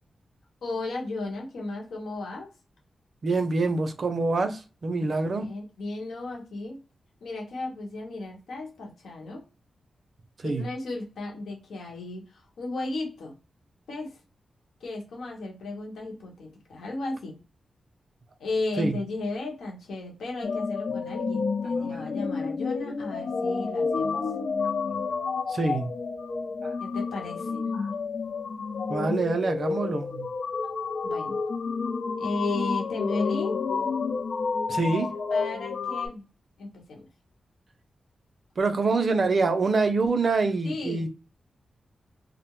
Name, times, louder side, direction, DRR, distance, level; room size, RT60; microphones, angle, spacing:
voice 1, 0.6-2.5 5.0-6.8 7.2-9.4 10.4-13.3 13.9-14.2 14.8-17.4 18.4-24.2 26.8-27.6 31.0-31.4 32.2-33.6 35.3-36.2 36.6-37.1 40.6-41.1, left 2 dB, 85° left, 1.1 m, -35 dB
voice 2, 3.2-5.5 10.4-10.7 18.8-19.0 21.8-22.0 25.5-25.9 26.6-26.7 28.9-30.3 34.7-35.1 38.6-41.1, right 3 dB, 60° right, 0.5 m, -26 dB
sound 1, 20.4-36.1, left 4 dB, 70° left, 0.5 m, -30 dB
2.5 x 2.1 x 3.0 m
cardioid pair, 50°, 0 cm